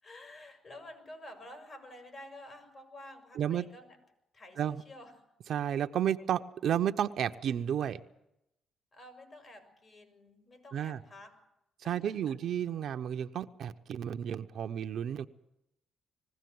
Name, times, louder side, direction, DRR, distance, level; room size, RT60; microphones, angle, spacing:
voice 1, 0.0-4.0 4.3-5.1 8.9-11.4 11.8-12.4, left 1 dB, 40° left, 7 dB, 5.6 m, -50 dB
voice 2, 5.5-8.0 10.7-11.0 11.9-15.3, right 9 dB, 65° right, 7 dB, 0.8 m, -32 dB
21.0 x 16.0 x 9.5 m, 0.86 s
cardioid pair, 90°, 0 cm